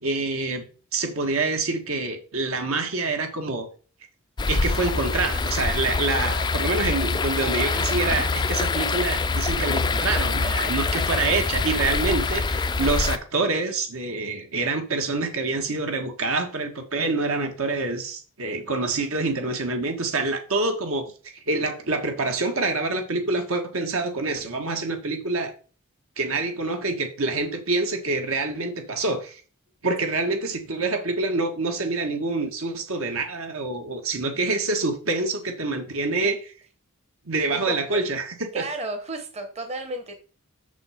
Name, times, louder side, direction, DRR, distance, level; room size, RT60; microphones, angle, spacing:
voice 1, 0.0-0.7 0.9-3.7 4.5-25.5 26.2-29.4 29.8-36.5 37.2-38.6, right 3 dB, 75° right, 1.6 m, -26 dB
sound 1, 4.4-13.2, left 3 dB, 20° left, 0.3 m, -25 dB
voice 2, 37.5-38.0 38.5-40.1, right 2 dB, 30° right, 1.0 m, -33 dB
6.8 x 6.1 x 5.0 m
head